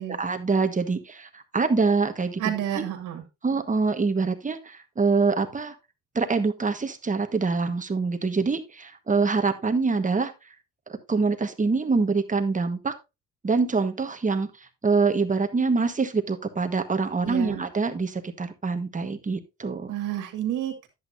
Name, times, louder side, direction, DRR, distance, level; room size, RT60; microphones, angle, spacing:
voice 1, 0.1-2.8 3.4-5.7 6.1-10.3 11.1-12.9 13.4-14.5 14.8-19.9, right 4 dB, 25° right, 7 dB, 1.3 m, -25 dB
voice 2, 2.4-3.2 17.2-17.6 19.9-20.9, right 11 dB, 85° right, 4 dB, 2.0 m, -30 dB
10.5 x 8.2 x 2.6 m, 0.25 s
cardioid pair, 90°, 30 cm